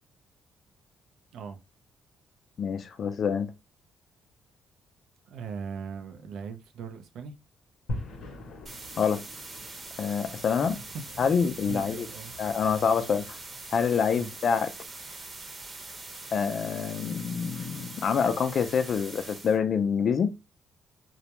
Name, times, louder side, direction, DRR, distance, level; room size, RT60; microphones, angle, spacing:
voice 1, 2.6-3.5 9.0-9.2 10.0-10.8 11.2-12.1 12.4-13.4 13.7-14.7 16.3-20.3, left 6 dB, 55° left, 0.4 m, -26 dB
voice 2, 5.3-7.3 10.6-11.3 11.6-12.3 14.2-14.3, right 6 dB, 80° right, 0.5 m, -39 dB
sound 1, 7.9-18.1, left 2 dB, 70° left, 0.7 m, -45 dB
sound 2, 8.7-19.6, right 3 dB, 35° right, 0.9 m, -43 dB
2.3 x 2.1 x 2.8 m
cardioid pair, 90°, 0 cm